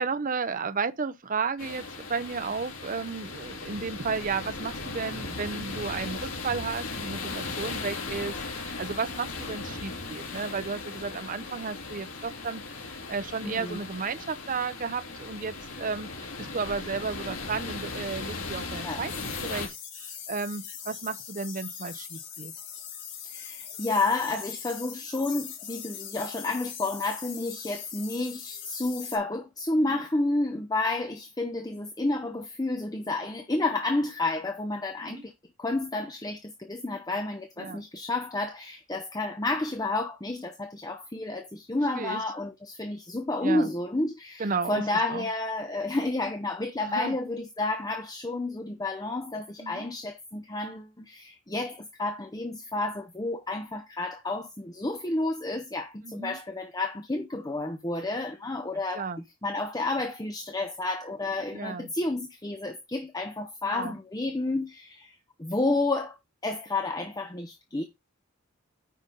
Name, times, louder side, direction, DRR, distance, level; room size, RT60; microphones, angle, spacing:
voice 1, 0.0-19.1 19.4-22.5 29.8-30.0 35.0-35.2 37.6-37.8 41.9-42.2 43.4-43.7 44.4-44.8 45.1-45.3 46.8-47.1 49.6-49.9 56.0-56.4 58.9-59.2 61.5-61.9 63.7-63.9, right 5 dB, 40° right, 0.7 m, -33 dB
sound 1, 1.6-19.7, left 3 dB, 80° left, 3.2 m, -37 dB
voice 2, 13.4-13.8 18.8-19.0 23.2-35.3 35.6-59.1 59.4-66.2 66.4-67.8, left 2 dB, 20° left, 0.8 m, -30 dB
sound 2, 19.1-29.2, left 8 dB, 60° left, 4.0 m, -41 dB
9.4 x 5.2 x 3.9 m
head